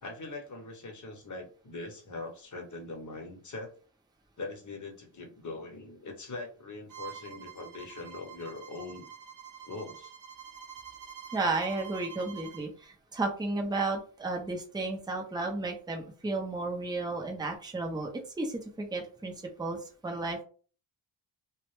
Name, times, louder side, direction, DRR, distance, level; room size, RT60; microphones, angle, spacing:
voice 1, 0.0-3.7 4.4-9.1 9.7-10.1, left 3 dB, 35° left, 2 dB, 0.8 m, -42 dB
Bowed string instrument, 6.9-12.7, right 9 dB, 40° right, 0.8 m, -47 dB
voice 2, 11.3-18.1 18.4-19.3 19.6-20.4, right 3 dB, 10° right, 1 dB, 0.5 m, -33 dB
2.1 x 2.0 x 3.1 m, 0.40 s
cardioid pair, 65°, 49 cm